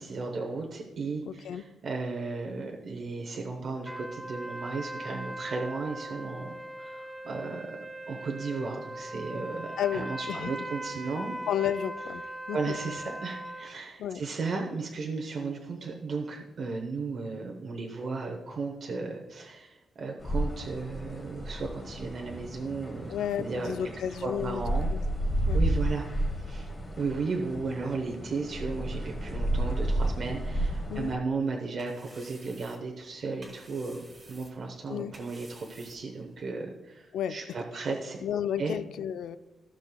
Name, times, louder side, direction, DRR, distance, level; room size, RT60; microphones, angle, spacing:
voice 1, 0.0-7.8 8.1-11.4 12.5-24.9 25.5-26.7 27.0-38.2 38.6-38.7, right 4 dB, 45° right, 2 dB, 0.8 m, -35 dB
voice 2, 1.3-1.6 9.8-10.5 11.5-12.6 14.0-14.2 23.1-24.6 24.9-25.0 25.5-25.6 30.9-31.1 34.9-35.1 37.1-37.4 38.2-39.4, left 9 dB, 75° left, 12 dB, 0.4 m, -32 dB
sound 1, 3.8-13.7, right 1 dB, 5° right, 0.5 m, -40 dB
sound 2, 20.2-31.1, right 1 dB, 25° left, 1.2 m, -32 dB
sound 3, 31.4-36.5, right 2 dB, 25° right, 1.6 m, -54 dB
15.0 x 6.3 x 2.2 m, 1.1 s
wide cardioid pair, 160°, 0 cm